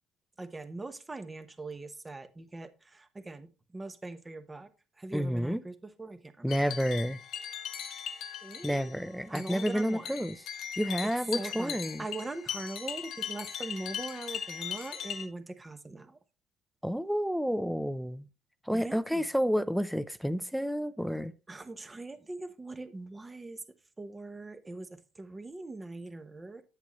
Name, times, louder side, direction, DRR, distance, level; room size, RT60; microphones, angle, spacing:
voice 1, 0.4-4.7 5.0-6.8 8.4-8.9 9.3-10.1 11.3-16.2 18.7-19.3 21.5-23.6 24.0-26.6, right 2 dB, 15° right, 1.0 m, -42 dB
voice 2, 5.1-5.6 6.4-7.2 8.6-10.4 10.8-12.1 16.8-18.3 18.7-21.3, equal, ahead, 0.5 m, -30 dB
sound 1, 6.5-15.3, left 8 dB, 65° left, 1.2 m, -39 dB
8.4 x 8.1 x 3.0 m
cardioid pair, 115°, 0 cm